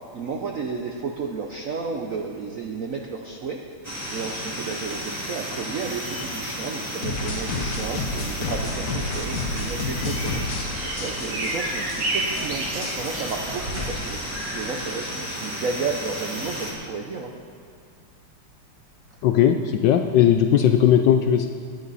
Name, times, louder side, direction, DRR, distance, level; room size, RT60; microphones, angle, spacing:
voice 1, 0.1-3.6 4.1-10.4 10.9-14.2 14.5-17.3, right 4 dB, 70° right, 2 dB, 0.7 m, -32 dB
sound 1, 3.8-16.7, equal, 5° right, 2.0 m, -33 dB
sound 2, 7.0-10.7 11.0-11.6 11.9-12.0 12.3-12.5 12.8-14.5, left 3 dB, 50° left, 1.6 m, -30 dB
Kapturka nie oszczędza gardła, 8.5-13.9, right 1 dB, 40° right, 1.8 m, -32 dB
voice 2, 19.2-21.5, left 9 dB, 75° left, 6 dB, 1.0 m, -18 dB
17.5 x 10.5 x 4.1 m, 2.3 s
omnidirectional pair, 2.4 m